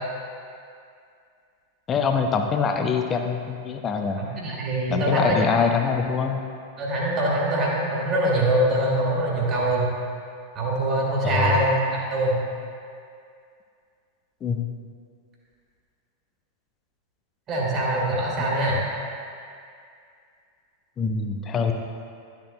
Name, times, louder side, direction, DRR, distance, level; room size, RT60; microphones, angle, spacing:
voice 1, 1.9-4.2 4.9-6.4 11.2-11.6 14.4-14.7 21.0-21.7, left 5 dB, 25° left, 5 dB, 0.6 m, -24 dB
voice 2, 4.2-5.7 6.8-9.9 10.5-12.4 17.5-18.8, right 1 dB, 30° right, -4 dB, 1.8 m, -23 dB
11.5 x 6.9 x 2.2 m, 2.3 s
figure-of-eight pair, 90°, 0 cm